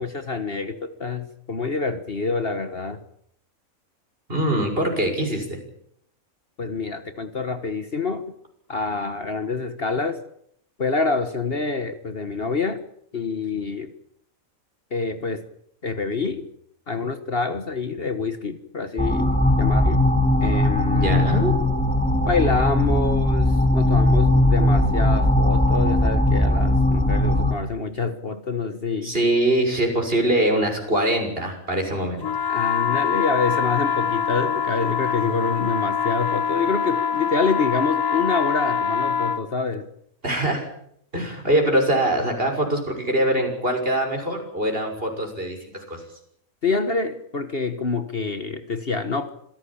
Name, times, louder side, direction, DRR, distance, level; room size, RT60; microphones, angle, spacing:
voice 1, 0.0-3.0 6.6-8.2 8.7-10.2 10.8-12.8 13.1-13.9 14.9-15.4 15.8-16.5 16.9-20.0 20.4-21.3 22.2-29.1 32.5-39.9 46.6-49.3, left 4 dB, 45° left, 10 dB, 1.6 m, -26 dB
voice 2, 4.3-5.6 20.9-21.5 29.0-32.3 40.2-40.7 41.1-46.0, right 1 dB, 40° right, 4 dB, 6.7 m, -23 dB
sound 1, 19.0-27.5, left 1 dB, 5° left, 2.6 m, -19 dB
sound 2, 32.2-39.4, left 6 dB, 75° left, 1.6 m, -24 dB
26.5 x 17.0 x 8.7 m, 0.71 s
omnidirectional pair, 1.4 m